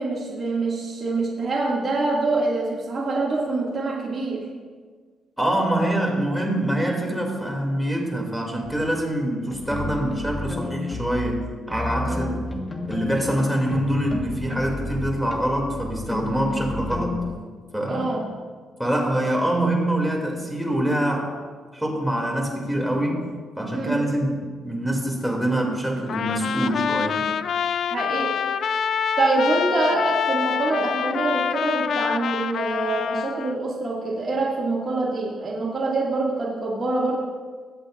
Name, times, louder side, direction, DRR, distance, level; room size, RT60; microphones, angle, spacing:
voice 1, 0.0-4.5 12.1-12.2 17.9-18.2 23.7-24.0 27.8-28.3 29.2-37.2, right 2 dB, 40° right, -4 dB, 2.3 m, -25 dB
voice 2, 5.4-12.5 12.8-17.2 17.7-18.2 18.8-21.3 21.7-23.2 23.6-27.2, right 1 dB, 5° right, -1 dB, 2.7 m, -25 dB
sound 1, 8.6-8.9 9.5-11.3 11.7-17.3, left 2 dB, 25° left, 1.5 m, -31 dB
Trumpet, 26.1-33.6, left 7 dB, 60° left, 0.4 m, -26 dB
22.0 x 7.7 x 2.6 m, 1.5 s
cardioid pair, 90°, 0 cm